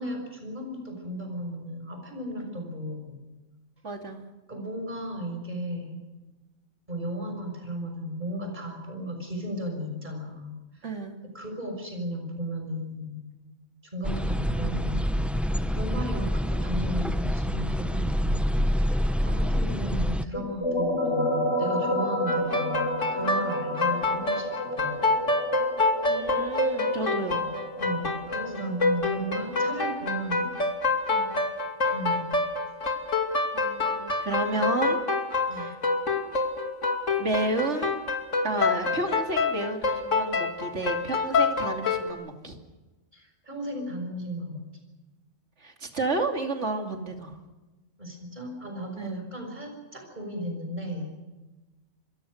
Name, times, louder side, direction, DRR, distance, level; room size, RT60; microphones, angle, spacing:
voice 1, 0.0-3.2 4.5-6.0 6.9-10.5 10.8-10.9 11.3-13.2 13.8-25.1 27.8-30.5 31.9-32.3 35.5-35.7 43.1-44.6 48.0-51.1, equal, 35° right, 4 dB, 6.3 m, -35 dB
voice 2, 3.8-4.2 10.8-11.2 26.1-27.4 31.1-31.4 33.5-35.0 35.5-35.8 37.2-38.0 38.4-42.6 45.6-47.4 49.0-49.2, right 2 dB, 65° right, 3 dB, 3.0 m, -31 dB
sound 1, 14.0-20.2, equal, ahead, 0.6 m, -26 dB
sound 2, 20.3-29.7, equal, 25° left, 5.8 m, -31 dB
sound 3, 22.3-42.1, left 3 dB, 80° left, 3.1 m, -26 dB
28.0 x 22.0 x 6.5 m, 1.1 s
omnidirectional pair, 1.3 m